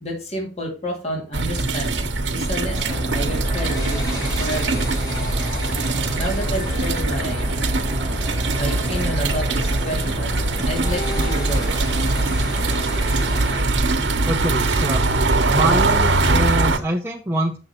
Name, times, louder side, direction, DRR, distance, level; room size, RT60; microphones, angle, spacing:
voice 1, 0.0-4.9 6.1-7.5 8.6-12.0, equal, 35° left, 0 dB, 2.5 m, -30 dB
sound 1, 1.3-16.8, right 2 dB, 70° right, 1.0 m, -22 dB
sound 2, 2.8-13.6, left 1 dB, 20° left, 4.4 m, -32 dB
voice 2, 14.3-15.1 15.5-17.6, right 1 dB, 15° right, 0 dB, 0.7 m, -24 dB
7.8 x 6.3 x 4.3 m, 0.34 s
head